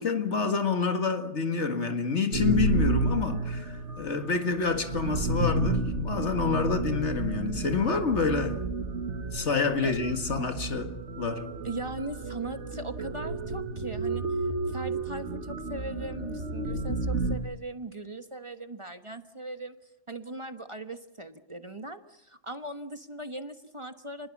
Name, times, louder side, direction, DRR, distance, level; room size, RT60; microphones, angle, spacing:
voice 1, 0.0-8.6 9.3-11.5, left 4 dB, 70° left, 2.2 m, -28 dB
sound 1, 2.3-17.4, right 2 dB, 70° right, 2.0 m, -31 dB
voice 2, 11.6-14.2 14.7-19.7 20.1-24.3, right 2 dB, 25° right, 1.2 m, -39 dB
29.0 x 21.0 x 7.3 m
omnidirectional pair, 1.2 m